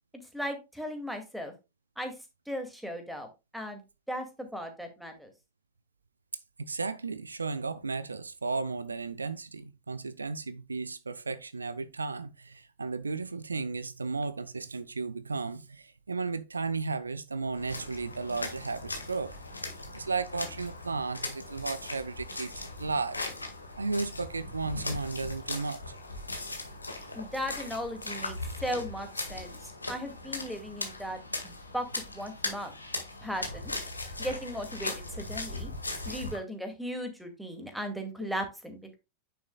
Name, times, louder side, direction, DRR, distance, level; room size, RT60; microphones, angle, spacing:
voice 1, 0.3-1.5 2.0-2.1 2.5-3.3 3.5-3.8 4.1-5.3 27.1-29.6 29.9-32.7 33.2-33.7 34.2-35.7 36.1-39.0, equal, ahead, 2.2 m, -37 dB
voice 2, 6.6-19.4 19.9-23.2 23.8-25.8 38.2-38.3, right 4 dB, 75° right, 0.6 m, -34 dB
sound 1, 17.5-36.4, left 2 dB, 80° left, 1.8 m, -39 dB
9.4 x 6.9 x 2.3 m
figure-of-eight pair, 90°, 0 cm